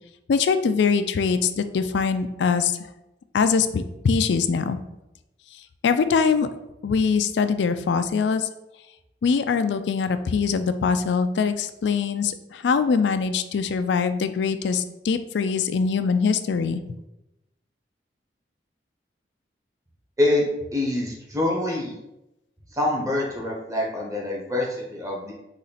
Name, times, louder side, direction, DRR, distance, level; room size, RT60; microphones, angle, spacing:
voice 1, 0.3-2.8 3.3-4.8 5.8-6.5 6.8-8.5 9.2-16.8, left 5 dB, 80° left, 10 dB, 0.4 m, -23 dB
voice 2, 20.7-21.9 22.7-25.3, left 1 dB, 20° right, -2 dB, 1.1 m, -25 dB
4.2 x 3.1 x 4.0 m, 0.90 s
head